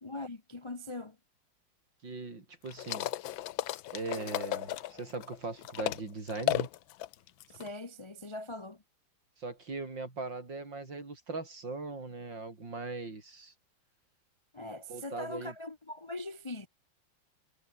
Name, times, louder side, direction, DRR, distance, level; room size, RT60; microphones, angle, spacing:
voice 1, 0.0-1.2 7.5-8.8 14.5-16.7, left 2 dB, 25° left, 0.6 m, -41 dB
voice 2, 2.0-3.1 3.9-6.7 9.4-13.5 14.9-15.5, right 3 dB, 70° right, 5.5 m, -40 dB
sound 1, 2.7-6.0 6.3-7.7, left 14 dB, 90° left, 1.5 m, -34 dB
sound 2, 4.0-6.1, left 4 dB, 50° left, 3.6 m, -54 dB
omnidirectional pair, 2.1 m